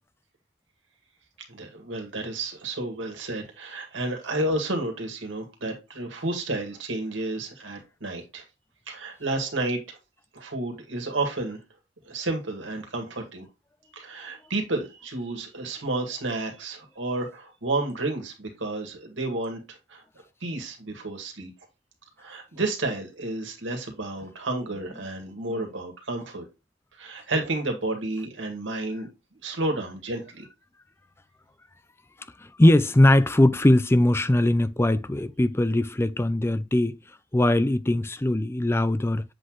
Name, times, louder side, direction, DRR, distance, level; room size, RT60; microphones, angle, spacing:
voice 1, 1.5-8.4 8.9-10.0 10.3-11.6 12.0-13.5 13.9-20.0 20.4-21.5 22.2-26.5 26.9-29.1 29.4-30.4, right 2 dB, 90° right, 2.1 m, -31 dB
voice 2, 32.6-37.0 37.3-39.2, left 1 dB, 15° left, 0.4 m, -20 dB
7.6 x 4.0 x 3.1 m
head